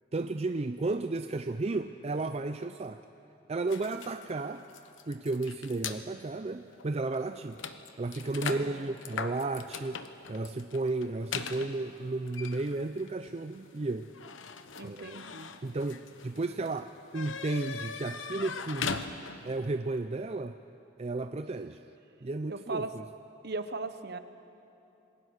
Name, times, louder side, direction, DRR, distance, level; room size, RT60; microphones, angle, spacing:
voice 1, 0.1-3.0 3.5-4.6 5.1-7.6 8.0-10.0 10.3-14.1 14.8-15.2 15.6-19.1 19.4-20.6 21.0-21.8 22.2-23.0, right 2 dB, 35° right, 9 dB, 0.5 m, -33 dB
sound 1, 3.7-6.0 6.7-6.9 7.1-19.6, left 5 dB, 85° left, 1.1 m, -41 dB
voice 2, 8.4-8.9 14.8-15.6 22.5-22.9 23.4-24.2, right 3 dB, 55° right, 10 dB, 1.1 m, -38 dB
27.5 x 20.5 x 6.5 m, 3.0 s
head